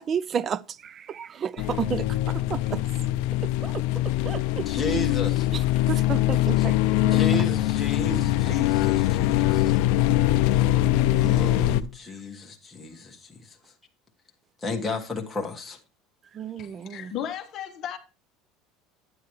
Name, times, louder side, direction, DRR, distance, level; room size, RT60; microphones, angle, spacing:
voice 1, 0.0-2.8 3.4-4.7 5.5-6.8 7.1-7.2 9.5-9.6 12.0-12.2 16.3-17.1, right 7 dB, 30° right, 0.4 m, -32 dB
sound 1, 1.6-11.8, left 14 dB, 70° left, 0.5 m, -23 dB
voice 2, 4.7-5.5 6.6-6.7 7.0-9.8 11.1-13.6 14.6-15.8, left 2 dB, 10° left, 1.5 m, -33 dB
voice 3, 16.6-18.0, left 10 dB, 40° left, 1.1 m, -35 dB
11.5 x 8.5 x 3.1 m
cardioid pair, 150°, 0 cm